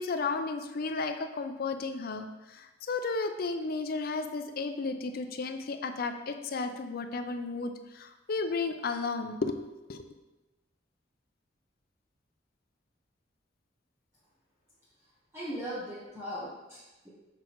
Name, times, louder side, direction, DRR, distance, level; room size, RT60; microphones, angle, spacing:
voice 1, 0.0-9.6 9.9-10.0, left 4 dB, 50° left, 8 dB, 0.5 m, -33 dB
voice 2, 15.3-17.1, equal, 15° right, -10 dB, 1.1 m, -39 dB
6.0 x 5.8 x 3.0 m, 1.1 s
head